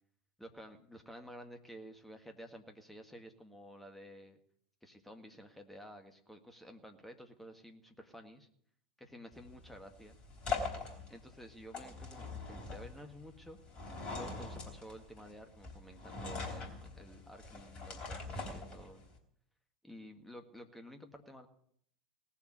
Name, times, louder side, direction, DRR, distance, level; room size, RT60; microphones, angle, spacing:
voice 1, 0.4-4.4 4.8-8.5 9.0-10.1 11.1-13.6 14.1-19.0 19.8-21.5, equal, 5° left, 5 dB, 1.8 m, -52 dB
sound 1, 9.3-19.2, left 4 dB, 30° left, 3.6 m, -43 dB
18.0 x 7.3 x 9.6 m, 0.65 s
figure-of-eight pair, 85°, 4 cm